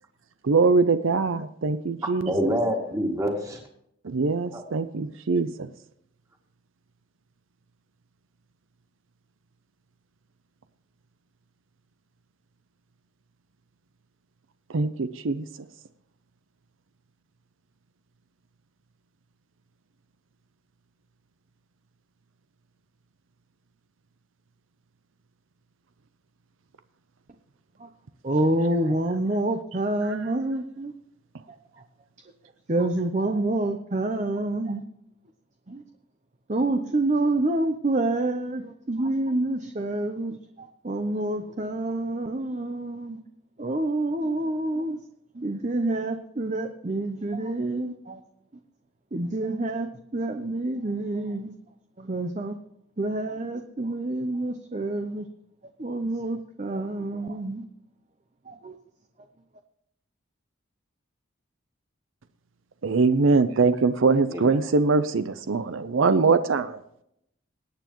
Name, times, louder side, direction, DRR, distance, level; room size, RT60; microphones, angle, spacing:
voice 1, 0.5-2.3 4.0-5.7 14.7-15.5 30.1-30.2 62.8-66.8, right 4 dB, 75° right, 12 dB, 0.6 m, -22 dB
voice 2, 2.0-3.6 4.5-4.6 64.3-64.6, equal, 15° right, 1 dB, 2.3 m, -27 dB
voice 3, 28.2-30.9 31.5-31.8 32.7-34.8 35.7-35.8 36.5-43.2 43.6-45.0 45.3-48.2 49.1-51.5 52.0-52.6 53.0-55.3 55.8-57.6 58.5-58.8, right 2 dB, 35° right, 6 dB, 0.7 m, -27 dB
21.0 x 9.2 x 3.0 m, 0.75 s
head